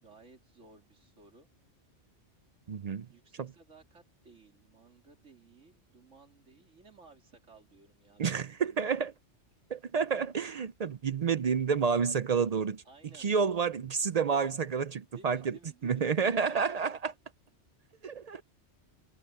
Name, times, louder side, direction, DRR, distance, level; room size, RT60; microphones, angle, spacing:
voice 1, 0.0-1.5 3.1-9.0 12.8-13.3 15.1-16.5, right 4 dB, 85° right, 3.1 m, -57 dB
voice 2, 2.7-3.1 8.2-9.1 9.7-12.8 13.2-15.5 15.8-17.1 18.0-18.4, right 6 dB, 55° right, 0.4 m, -29 dB
omnidirectional pair, 1.2 m